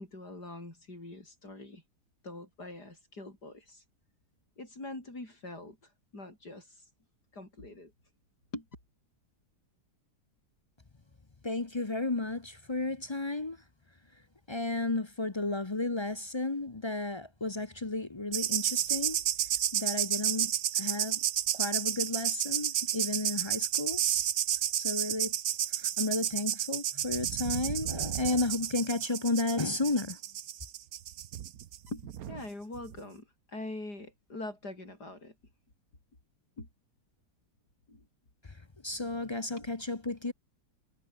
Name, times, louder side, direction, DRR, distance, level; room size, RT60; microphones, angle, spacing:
voice 1, 0.0-1.8 2.2-3.8 4.6-6.9 7.3-7.9 8.5-8.7 31.9-35.3 36.6-36.7 37.9-38.0 39.6-39.7, left 2 dB, 80° left, 8.0 m, -43 dB
voice 2, 11.4-13.6 14.5-19.2 19.7-20.5 20.8-21.2 21.5-24.0 24.8-25.3 25.8-30.2 38.4-38.6 38.8-40.3, left 2 dB, 25° left, 0.7 m, -33 dB
sound 1, 18.3-32.4 32.8-33.0, right 11 dB, 65° right, 1.3 m, -31 dB
omnidirectional pair, 1.7 m